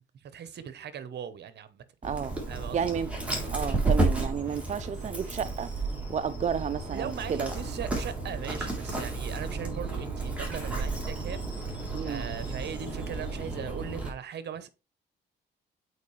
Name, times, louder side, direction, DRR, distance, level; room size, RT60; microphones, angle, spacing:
voice 1, 0.3-1.8 2.5-2.9 4.4-4.6 6.9-11.7 12.0-14.7, right 8 dB, 60° right, 0.9 m, -39 dB
Dog, 2.0-14.1, right 3 dB, 5° right, 3.1 m, -32 dB
voice 2, 2.0-2.3 2.7-3.1 3.5-5.7 6.1-7.5 11.9-12.2, right 7 dB, 35° right, 0.5 m, -31 dB
8.2 x 4.6 x 3.2 m
cardioid pair, 90°, 20 cm